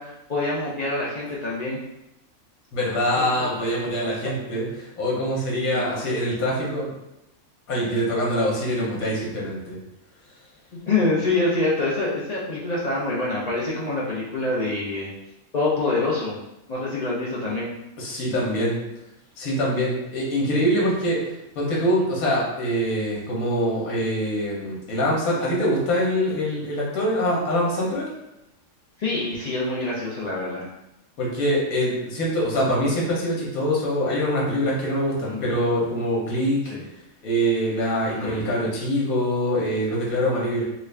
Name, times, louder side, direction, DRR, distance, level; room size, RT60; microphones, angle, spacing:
voice 1, 0.0-1.8 3.2-3.5 5.7-5.8 10.9-15.1 15.5-16.4 16.7-17.7 29.0-30.6 35.3-35.5 36.7-36.8 38.0-38.4, left 2 dB, 55° left, -7 dB, 0.4 m, -26 dB
voice 2, 2.7-6.9 7.7-9.8 18.0-18.8 19.4-21.2 21.6-28.1 31.2-36.6 37.2-40.6, equal, 80° left, -4 dB, 1.4 m, -24 dB
3.1 x 2.4 x 3.2 m, 0.90 s
omnidirectional pair, 1.5 m